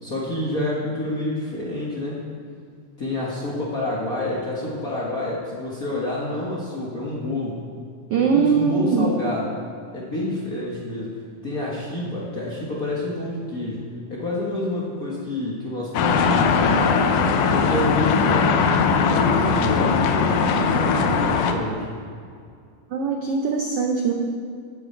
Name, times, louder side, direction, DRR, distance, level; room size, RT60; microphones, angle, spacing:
voice 1, 0.0-2.2 3.0-7.6 8.3-9.5 9.9-11.2 11.4-17.1 17.4-21.9, left 1 dB, 45° left, -5 dB, 1.2 m, -28 dB
voice 2, 8.1-9.1 22.9-24.1, right 5 dB, 90° right, 2 dB, 1.2 m, -21 dB
sound 1, 15.9-21.5, left 5 dB, 75° left, 2.2 m, -20 dB
14.5 x 8.0 x 4.5 m, 2.3 s
omnidirectional pair, 3.7 m